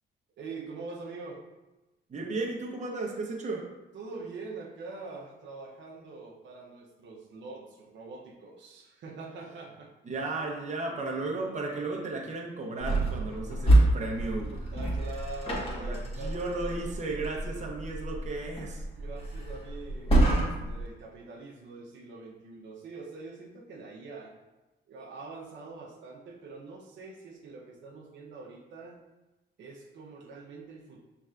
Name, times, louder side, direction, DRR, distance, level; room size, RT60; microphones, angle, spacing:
voice 1, 0.4-1.4 3.9-9.9 14.7-16.8 18.9-24.3 24.9-29.0 29.6-31.0, right 3 dB, 65° right, -2 dB, 0.8 m, -44 dB
voice 2, 2.1-3.7 10.1-14.7 15.8-18.8, right 3 dB, 35° right, -1 dB, 0.9 m, -34 dB
sound 1, 12.8-20.9, right 1 dB, 30° left, 1.5 m, -28 dB
5.9 x 3.3 x 2.4 m, 1.0 s
cardioid pair, 90°, 20 cm